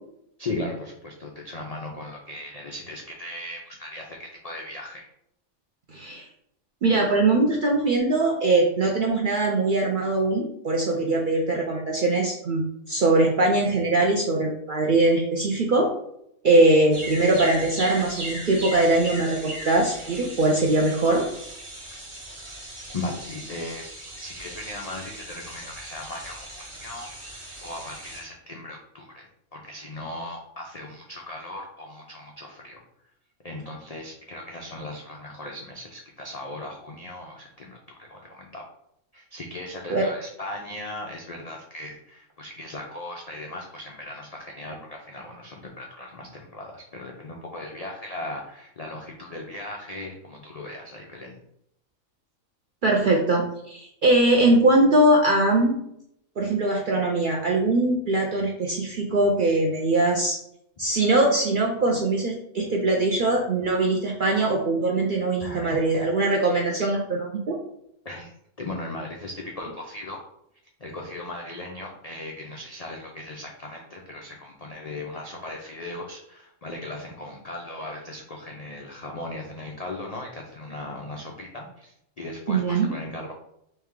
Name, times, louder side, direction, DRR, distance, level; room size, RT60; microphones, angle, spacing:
voice 1, 0.4-5.0 22.9-23.9 24.2-29.3 29.5-32.8 33.4-38.7 39.1-51.4 65.4-66.1 68.0-68.3 68.6-70.2 70.8-83.3, left 2 dB, 85° left, 0 dB, 0.3 m, -37 dB
voice 2, 5.9-6.3 6.8-15.9 16.4-21.2 39.9-40.0 52.8-55.8 56.4-60.4 60.8-67.6 82.5-83.0, right 2 dB, 65° right, 0 dB, 0.5 m, -21 dB
sound 1, 16.9-28.2, right 1 dB, 25° right, 0.9 m, -38 dB
3.3 x 3.2 x 3.6 m, 0.76 s
omnidirectional pair, 1.4 m